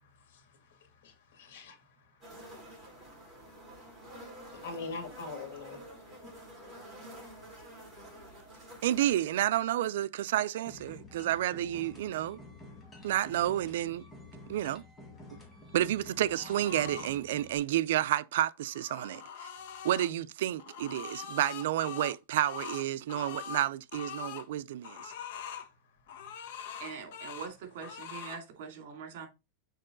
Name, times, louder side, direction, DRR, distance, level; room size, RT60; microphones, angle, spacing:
voice 1, 0.0-2.4 2.9-3.3 4.5-5.8 14.4-14.5 26.2-26.3, left 4 dB, 90° left, 2.4 m, -45 dB
sound 1, 2.2-9.4, right 1 dB, 5° right, 4.5 m, -49 dB
voice 2, 8.8-12.4 13.0-14.0 14.5-14.8 15.7-19.5 19.8-25.1, right 13 dB, 80° right, 0.4 m, -30 dB
sound 2, 10.7-17.6, left 2 dB, 15° left, 1.8 m, -50 dB
sound 3, 16.3-17.1 18.5-20.1 20.6-24.5 24.8-25.7 26.1-27.5 27.8-28.4, left 8 dB, 70° left, 1.0 m, -43 dB
voice 3, 26.8-29.3, right 6 dB, 60° right, 2.5 m, -43 dB
6.6 x 4.7 x 3.8 m
supercardioid pair, 160°, 0 cm